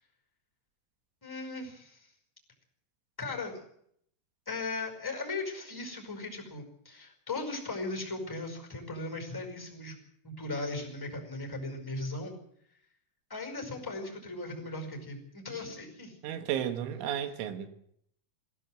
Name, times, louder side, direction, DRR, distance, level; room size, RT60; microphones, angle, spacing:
voice 1, 1.2-2.1 3.2-3.6 4.4-10.0 10.2-12.4 13.3-16.2, left 2 dB, 5° left, 4.9 m, -38 dB
voice 2, 16.2-17.7, right 10 dB, 80° right, 4.0 m, -33 dB
21.0 x 16.5 x 7.8 m
omnidirectional pair, 5.5 m